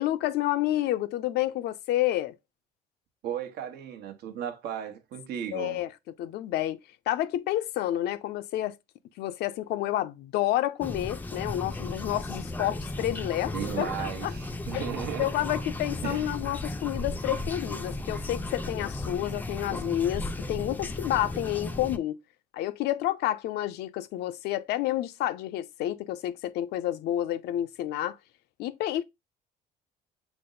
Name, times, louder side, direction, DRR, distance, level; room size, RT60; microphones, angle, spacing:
voice 1, 0.0-2.4 5.5-6.8 7.1-8.8 9.2-14.3 14.7-14.9 15.2-22.2 22.5-28.2 28.6-29.0, left 13 dB, 75° left, 0.5 m, -29 dB
voice 2, 3.2-5.8 13.5-15.3 16.0-16.3, right 9 dB, 75° right, 0.9 m, -35 dB
sound 1, 10.8-22.0, left 2 dB, 10° left, 0.4 m, -35 dB
5.9 x 2.0 x 3.8 m
cardioid pair, 110°, 17 cm